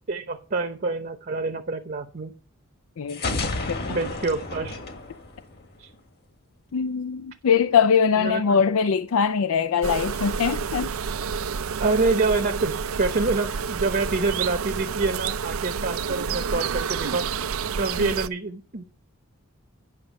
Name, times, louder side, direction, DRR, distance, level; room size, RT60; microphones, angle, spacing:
voice 1, 0.1-2.3 3.9-4.8 5.8-5.9 8.2-8.6 11.8-17.3 17.8-18.8, right 3 dB, 45° right, 0.9 m, -26 dB
voice 2, 3.0-3.8 6.7-10.9 18.0-18.1, left 6 dB, 70° left, 0.4 m, -22 dB
sound 1, 3.1-5.9, left 3 dB, 50° left, 1.7 m, -31 dB
sound 2, 9.8-18.3, right 6 dB, 70° right, 0.5 m, -29 dB
9.9 x 6.5 x 5.3 m
head